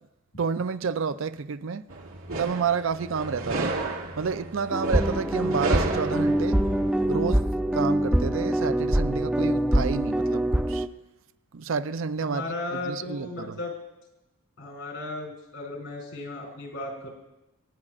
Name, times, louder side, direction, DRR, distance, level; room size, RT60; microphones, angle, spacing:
voice 1, 0.4-1.8 2.4-3.7 4.2-6.6 7.1-7.4 7.7-10.8 11.5-13.6, right 5 dB, 65° right, 0.5 m, -30 dB
sound 1, 1.9-7.1, right 3 dB, 90° right, 1.7 m, -33 dB
sound 2, 4.7-10.9, right 1 dB, 5° right, 0.4 m, -24 dB
voice 2, 12.2-13.7 14.6-17.1, left 2 dB, 70° left, 4.2 m, -35 dB
27.5 x 9.7 x 2.5 m
head